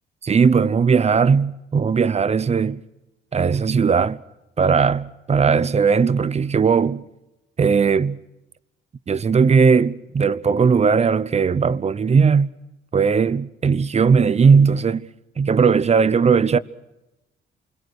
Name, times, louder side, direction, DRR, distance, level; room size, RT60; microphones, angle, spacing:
voice 1, 0.2-2.8 3.3-4.2 4.6-7.0 7.6-8.2 9.1-12.5 12.9-15.1 15.4-16.6, right 5 dB, 35° right, 0.8 m, -18 dB
28.0 x 22.0 x 6.5 m
cardioid pair, 90°, 20 cm